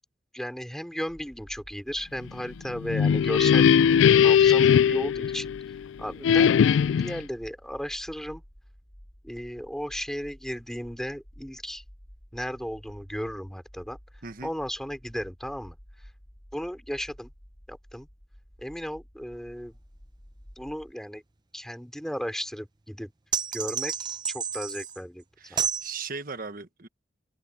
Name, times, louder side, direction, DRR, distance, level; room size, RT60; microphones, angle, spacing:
voice 1, 0.3-5.6 6.0-6.5 7.0-8.4 9.2-11.8 12.3-14.0 14.4-15.8 16.5-17.3 17.7-18.1 18.6-19.8 20.6-21.2 21.5-23.1 23.5-23.9 24.3-25.7, equal, 5° left, 3.6 m, -35 dB
sound 1, 1.1-20.9, equal, 25° left, 3.4 m, -52 dB
sound 2, 2.7-5.8 6.2-7.2, left 8 dB, 80° left, 0.3 m, -20 dB
sound 3, 23.3-25.0 25.6-25.9, right 6 dB, 25° right, 0.7 m, -30 dB
voice 2, 25.4-26.9, right 4 dB, 50° right, 1.4 m, -38 dB
open air
head